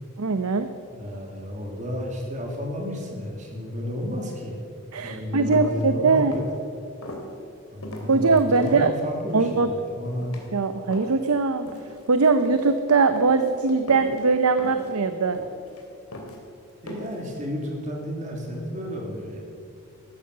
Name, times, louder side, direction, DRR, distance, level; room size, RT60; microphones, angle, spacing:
voice 1, 0.2-0.7 4.9-6.4 8.1-8.9 9.3-9.7 10.5-11.7 12.1-15.4, right 4 dB, 90° right, 9 dB, 0.8 m, -21 dB
voice 2, 0.9-4.6 5.0-6.4 7.7-10.3 16.8-19.4, equal, 35° right, 0 dB, 3.0 m, -32 dB
sound 1, 5.5-5.8 6.2-6.6 7.0-7.2 7.8-8.7 9.3-9.6 10.0-10.5 10.9-11.3 11.7-12.0 12.3-12.7 13.2-13.5 13.9-14.2 14.6-14.9 15.3-15.8 16.1-16.4 16.9-17.2, left 1 dB, 85° left, 2.9 m, -39 dB
14.5 x 13.0 x 6.8 m, 2.5 s
head